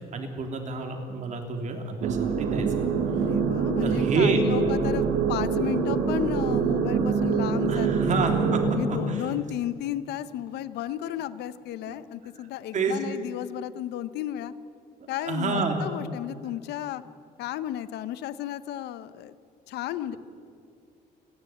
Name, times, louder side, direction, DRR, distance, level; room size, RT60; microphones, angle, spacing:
voice 1, 0.1-2.9 3.8-4.4 7.7-9.3 11.9-12.0 12.3-12.5 12.7-13.0 15.2-15.8 20.1-20.2, right 4 dB, 45° right, 3 dB, 3.4 m, -29 dB
sound 1, 2.0-8.8, right 6 dB, 75° right, 3.0 m, -25 dB
voice 2, 3.1-8.2 8.6-14.5 15.1-17.0 17.4-19.3 19.7-20.2, left 12 dB, 80° left, 15 dB, 0.9 m, -33 dB
29.0 x 11.0 x 9.2 m, 2.3 s
cardioid pair, 110°, 17 cm